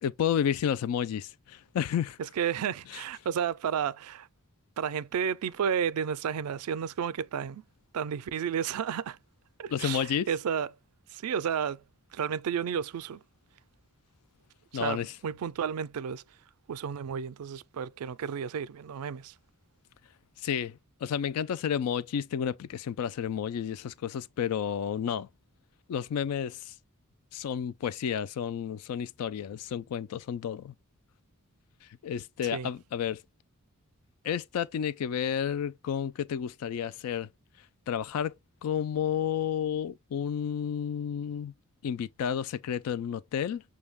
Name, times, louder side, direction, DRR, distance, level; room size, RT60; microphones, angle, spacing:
voice 1, 0.0-2.2 9.7-10.3 14.7-15.1 20.4-25.3 25.9-26.7 27.3-30.7 31.8-33.2 34.2-37.3 37.9-38.3 38.6-41.5 41.8-43.6, left 8 dB, 85° left, 0.3 m, -31 dB
voice 2, 2.2-4.3 4.8-7.6 7.9-9.2 9.6-10.7 11.1-11.8 12.1-13.2 14.7-16.2 16.7-19.3 32.5-32.7, right 7 dB, 85° right, 0.4 m, -32 dB
6.2 x 2.2 x 3.4 m
head